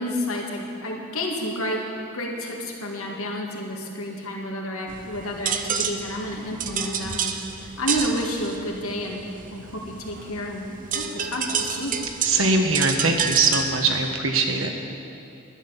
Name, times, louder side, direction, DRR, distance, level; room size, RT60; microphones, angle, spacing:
voice 1, 0.0-1.8 2.1-7.3 7.8-10.7 10.9-12.0, left 1 dB, 80° left, 0 dB, 2.0 m, -30 dB
sound 1, 4.9-14.1, right 6 dB, 40° right, 0.7 m, -30 dB
voice 2, 12.2-14.7, right 3 dB, 70° right, 4 dB, 1.4 m, -21 dB
11.5 x 10.0 x 7.2 m, 2.7 s
head